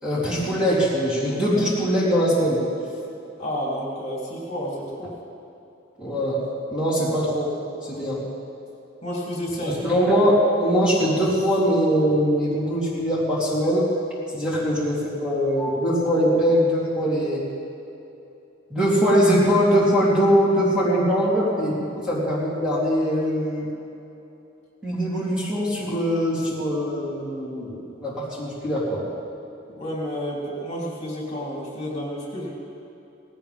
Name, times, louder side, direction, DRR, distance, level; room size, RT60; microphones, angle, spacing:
voice 1, 0.0-2.6 6.0-6.4 6.7-7.5 7.9-8.2 9.8-13.9 14.3-17.4 18.7-23.7 24.8-29.0, equal, 5° right, -9 dB, 3.6 m, -22 dB
voice 2, 3.4-5.1 9.0-9.8 14.4-14.6 29.8-32.5, equal, 35° left, -5 dB, 3.7 m, -30 dB
18.5 x 16.5 x 3.7 m, 2.9 s
head